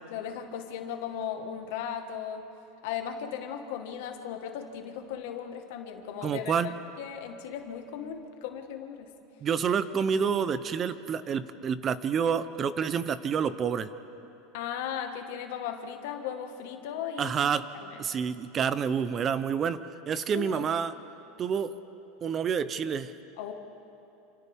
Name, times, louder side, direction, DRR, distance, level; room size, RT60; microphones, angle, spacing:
voice 1, 0.1-2.5 2.8-6.7 7.0-9.1 14.5-17.4 17.7-18.0 20.3-20.7 23.4-23.5, left 8 dB, 70° left, 5 dB, 1.7 m, -37 dB
voice 2, 6.2-6.7 9.4-13.9 17.2-17.6 18.0-19.8 20.1-20.9 21.4-21.7 22.2-23.1, right 7 dB, 30° right, 13 dB, 0.8 m, -28 dB
28.5 x 27.5 x 3.7 m, 2.9 s
supercardioid pair, 145°, 0 cm